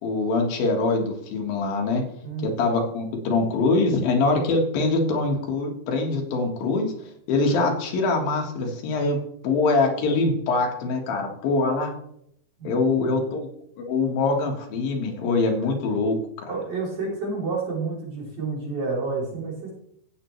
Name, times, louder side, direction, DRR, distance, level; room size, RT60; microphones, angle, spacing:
voice 1, 0.0-2.0 2.6-6.9 7.3-9.2 9.4-11.9 12.6-13.5 13.8-16.5, left 3 dB, 65° left, 1 dB, 3.3 m, -23 dB
voice 2, 2.2-2.6 12.6-13.2 16.5-19.7, right 3 dB, 45° right, -4 dB, 4.2 m, -30 dB
16.5 x 6.0 x 3.2 m, 0.69 s
omnidirectional pair, 4.7 m